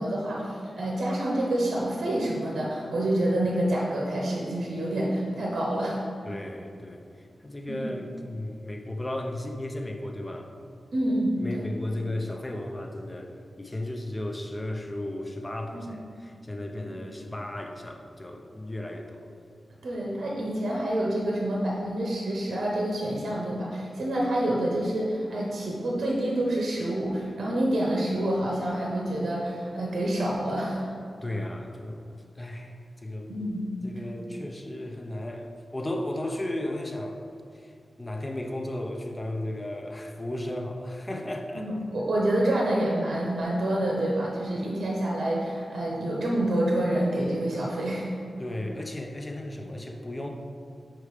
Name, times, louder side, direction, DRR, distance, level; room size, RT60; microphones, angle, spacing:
voice 1, 0.0-6.0 7.7-7.9 10.9-11.7 15.7-15.9 19.8-30.9 33.3-33.7 41.5-48.1, right 1 dB, 75° right, -3 dB, 0.8 m, -27 dB
voice 2, 6.2-10.5 11.4-19.3 31.2-32.0 32.4-33.3 33.8-37.2 37.5-41.7 48.4-50.3, left 1 dB, 20° left, 3 dB, 0.5 m, -35 dB
5.0 x 4.5 x 4.9 m, 2.4 s
wide cardioid pair, 105°, 0 cm